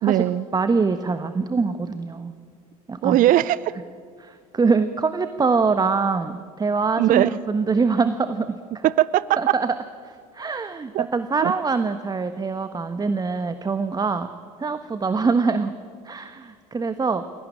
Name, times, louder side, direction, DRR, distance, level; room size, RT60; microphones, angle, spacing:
voice 1, 0.0-0.5 3.0-3.7 7.0-7.4 8.8-9.5 10.9-11.1 11.4-11.5, right 14 dB, 40° right, 18 dB, 0.7 m, -19 dB
voice 2, 0.5-2.3 2.9-3.2 4.2-8.6 9.4-9.8 10.3-14.3 14.6-15.7 16.0-17.2, right 4 dB, 20° right, 10 dB, 1.3 m, -24 dB
27.5 x 17.5 x 10.0 m, 2.1 s
figure-of-eight pair, 70°, 21 cm